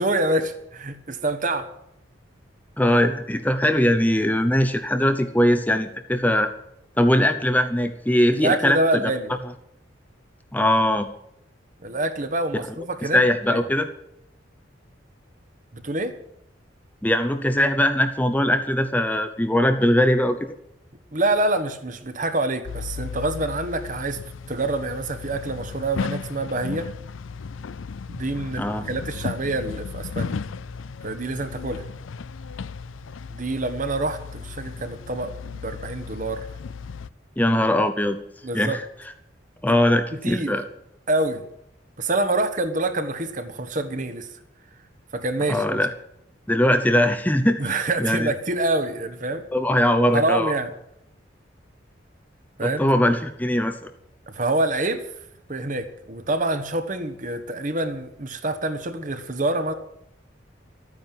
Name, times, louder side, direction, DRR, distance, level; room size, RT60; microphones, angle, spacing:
voice 1, 0.0-1.7 8.3-9.3 11.8-13.2 13.5-13.6 15.7-16.2 21.1-24.2 24.5-26.9 28.1-30.3 31.0-31.8 33.3-36.5 38.4-38.8 40.1-40.6 41.1-41.4 42.0-44.3 45.1-45.8 47.6-49.4 50.1-50.7 52.6-52.9 54.3-55.1 55.5-59.7, right 2 dB, 40° right, 9 dB, 1.4 m, -26 dB
voice 2, 2.8-6.5 7.0-9.1 10.5-11.1 13.1-13.9 17.0-20.4 28.6-28.8 37.4-38.2 38.5-38.8 39.6-40.6 45.5-45.9 46.5-47.7 48.0-48.3 49.5-50.5 52.6-53.9, left 1 dB, 10° left, 7 dB, 0.8 m, -21 dB
sound 1, 22.6-37.1, left 5 dB, 85° left, 0.5 m, -35 dB
13.0 x 9.7 x 9.1 m, 0.78 s
head